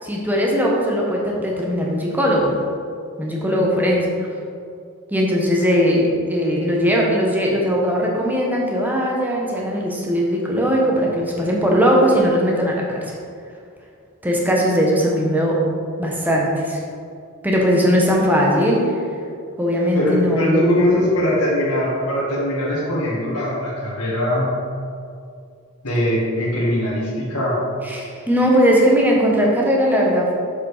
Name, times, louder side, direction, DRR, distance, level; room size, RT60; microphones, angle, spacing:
voice 1, 0.0-2.5 3.2-4.3 5.1-13.1 14.2-15.6 16.0-16.8 17.4-18.9 19.6-21.1 27.9-30.3, equal, 10° right, -2 dB, 1.1 m, -19 dB
voice 2, 19.9-24.5 25.8-27.6, equal, 75° left, -8 dB, 1.8 m, -21 dB
7.2 x 5.1 x 4.9 m, 2.3 s
head